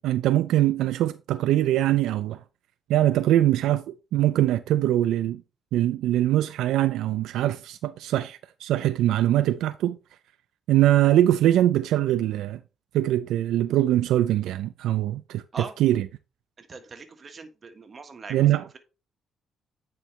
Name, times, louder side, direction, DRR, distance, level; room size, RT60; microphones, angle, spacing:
voice 1, 0.0-2.4 2.9-3.8 4.1-5.4 5.7-10.0 10.7-12.6 12.9-16.1 18.3-18.6, right 13 dB, 85° right, 0.3 m, -22 dB
voice 2, 16.6-18.4, right 4 dB, 40° right, 1.4 m, -41 dB
9.2 x 4.5 x 3.2 m
cardioid pair, 90°, 0 cm